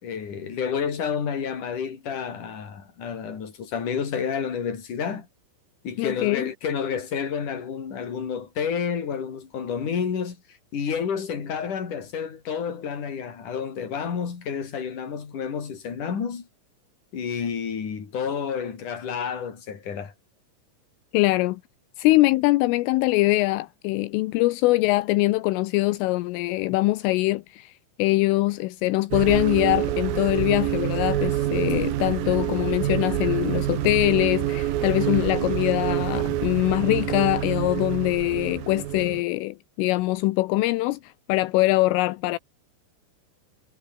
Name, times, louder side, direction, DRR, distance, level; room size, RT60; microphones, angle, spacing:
voice 1, 0.0-5.3 5.8-10.4 10.7-16.5 17.1-20.1, left 7 dB, 40° left, 5.0 m, -30 dB
voice 2, 6.0-6.5 21.1-21.6 22.0-27.7 28.0-42.4, left 19 dB, 80° left, 3.3 m, -23 dB
sound 1, 29.1-39.2, right 13 dB, 70° right, 2.2 m, -27 dB
omnidirectional pair, 6.0 m